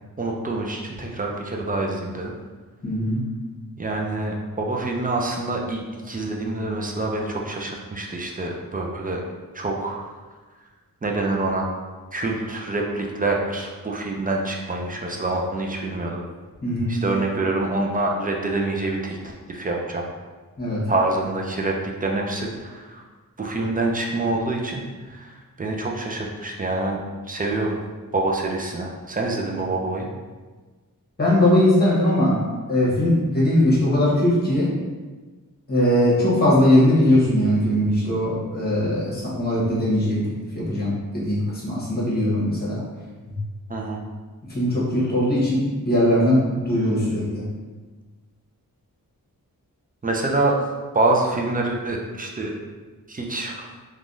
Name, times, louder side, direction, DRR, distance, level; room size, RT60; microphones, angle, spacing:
voice 1, 0.2-2.3 3.8-9.2 9.5-10.1 11.0-11.7 12.1-16.2 16.9-20.1 20.9-23.0 23.4-27.0 27.3-27.8 28.1-30.1 43.7-44.0 50.0-50.6 50.9-52.6 53.1-53.7, right 2 dB, 25° right, 0 dB, 0.3 m, -26 dB
voice 2, 2.8-3.2 16.6-17.0 20.6-20.9 31.2-32.4 32.7-34.7 35.7-40.2 40.5-42.8 43.3-43.4 44.5-47.4, left 1 dB, 25° left, -7 dB, 1.1 m, -20 dB
3.3 x 2.3 x 2.6 m, 1.3 s
wide cardioid pair, 110°, 36 cm